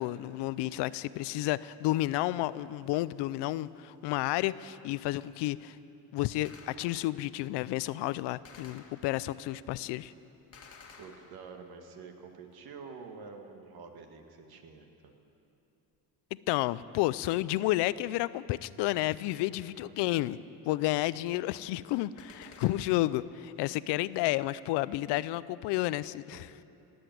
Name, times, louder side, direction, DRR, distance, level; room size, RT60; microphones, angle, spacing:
voice 1, 0.0-5.8 6.1-10.1 16.5-20.4 20.7-26.5, left 16 dB, 80° left, 18 dB, 0.5 m, -31 dB
Gunshot gunfire, 6.5-7.3 8.5-9.4 10.5-11.8 22.2-23.3, left 5 dB, 35° left, 1.6 m, -54 dB
voice 2, 11.0-15.1 19.5-19.9 26.3-26.6, right 5 dB, 60° right, 4 dB, 1.9 m, -48 dB
18.0 x 8.0 x 9.3 m, 2.9 s
cardioid pair, 110°, 41 cm